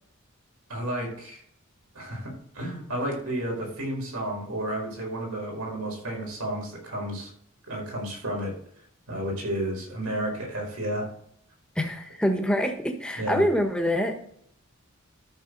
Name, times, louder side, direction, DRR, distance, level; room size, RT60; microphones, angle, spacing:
voice 1, 0.7-1.4 1.9-7.3 7.7-8.5 9.1-11.1 13.2-13.4, right 1 dB, 80° right, -1 dB, 4.8 m, -32 dB
voice 2, 11.7-14.1, equal, 5° left, 4 dB, 1.3 m, -25 dB
13.0 x 6.6 x 4.0 m, 0.69 s
head